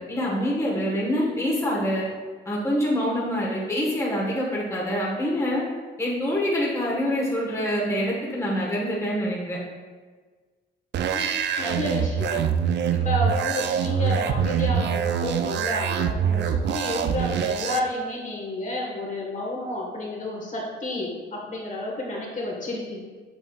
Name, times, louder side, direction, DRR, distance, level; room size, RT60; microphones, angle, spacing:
voice 1, 0.0-2.1 2.4-5.6 6.0-9.6, equal, 15° left, -5 dB, 1.5 m, -25 dB
sound 1, 10.9-17.8, right 7 dB, 60° right, 0.4 m, -24 dB
voice 2, 11.1-23.0, left 1 dB, 40° left, -2 dB, 1.6 m, -31 dB
7.7 x 5.4 x 2.4 m, 1.4 s
cardioid pair, 90°, 20 cm